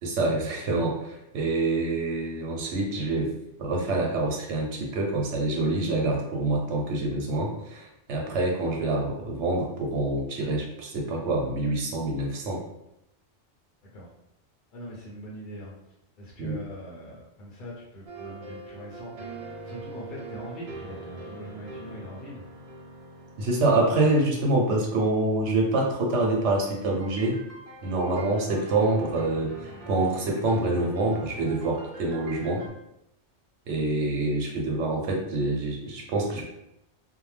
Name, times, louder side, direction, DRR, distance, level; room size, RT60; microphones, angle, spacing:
voice 1, 0.0-3.3 3.6-12.6 16.4-16.6 23.4-27.4 27.8-32.6 33.7-36.4, right 2 dB, 80° right, 0 dB, 1.0 m, -26 dB
voice 2, 14.7-15.7 16.2-19.2 19.6-22.4, equal, 50° left, -5 dB, 0.7 m, -42 dB
sound 1, 18.1-25.8 26.7-32.7, right 3 dB, 60° right, 0.4 m, -43 dB
2.6 x 2.0 x 3.2 m, 0.83 s
omnidirectional pair, 1.2 m